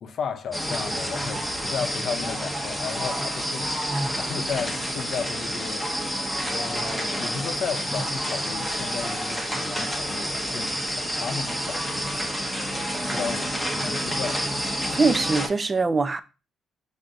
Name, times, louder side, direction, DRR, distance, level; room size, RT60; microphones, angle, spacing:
voice 1, 0.0-3.8 4.2-5.9 6.5-14.4, left 6 dB, 60° left, 0.6 m, -34 dB
sound 1, 0.5-15.5, equal, 5° right, 0.9 m, -29 dB
voice 2, 14.9-16.2, right 4 dB, 30° right, 0.4 m, -22 dB
5.9 x 2.7 x 2.5 m
cardioid pair, 90°, 0 cm